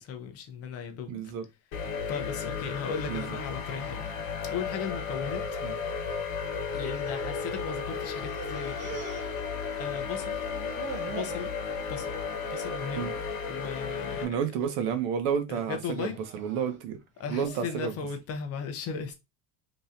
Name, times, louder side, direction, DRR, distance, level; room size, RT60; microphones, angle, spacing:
voice 1, 0.0-1.3 1.8-4.0 4.4-5.4 6.7-9.4 9.8-10.5 11.1-11.5 11.9-13.1 13.5-14.4 15.5-16.2 17.2-19.1, left 6 dB, 40° left, 0.7 m, -37 dB
voice 2, 1.1-1.4 3.1-3.2 5.6-5.7 12.9-13.1 14.2-17.0 17.3-17.9, right 7 dB, 70° right, 1.0 m, -31 dB
sound 1, 1.7-14.2, left 5 dB, 55° left, 1.3 m, -34 dB
sound 2, 6.8-7.8 8.1-10.0 10.3-11.4 11.9-12.3 12.6-12.8 13.6-14.0 14.5-14.9 15.8-18.0, right 6 dB, 30° right, 0.6 m, -44 dB
3.7 x 3.0 x 2.6 m
cardioid pair, 150°, 38 cm